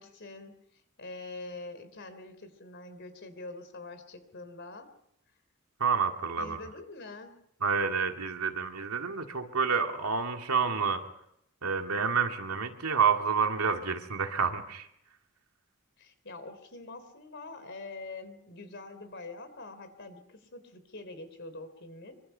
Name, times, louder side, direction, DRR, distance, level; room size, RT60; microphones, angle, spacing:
voice 1, 0.0-4.9 6.4-7.4 16.0-22.2, left 2 dB, 55° left, 11 dB, 3.5 m, -45 dB
voice 2, 5.8-6.6 7.6-11.0 11.6-14.9, right 5 dB, 90° right, 4 dB, 2.4 m, -29 dB
25.5 x 25.0 x 5.7 m, 0.76 s
head